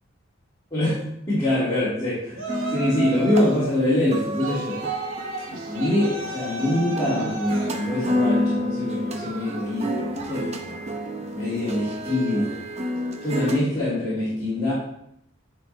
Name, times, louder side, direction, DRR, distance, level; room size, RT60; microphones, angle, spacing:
voice 1, 0.7-1.0 1.3-4.9 5.6-10.7 11.3-12.6 13.2-14.7, left 1 dB, 15° left, -13 dB, 2.3 m, -24 dB
Yell, 2.3-3.7 4.4-7.8, right 3 dB, 75° right, 1.0 m, -33 dB
sound 1, 2.5-13.6, equal, 30° right, 0.7 m, -29 dB
9.6 x 4.2 x 3.3 m, 0.75 s
head